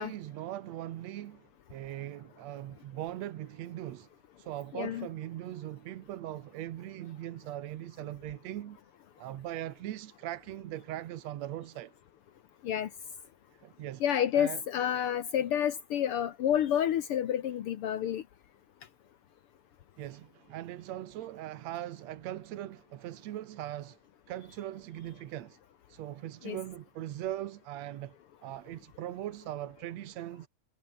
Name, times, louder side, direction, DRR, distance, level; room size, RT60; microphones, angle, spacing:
voice 1, 0.0-4.1 4.4-8.8 9.2-11.9 13.6-14.0 14.3-14.6 20.0-24.0 24.3-25.6 25.9-28.2 28.4-30.5, right 13 dB, 65° right, 1.9 m, -40 dB
voice 2, 4.7-5.1 12.6-12.9 14.0-18.2 26.4-26.6, left 10 dB, 85° left, 1.2 m, -29 dB
omnidirectional pair, 4.0 m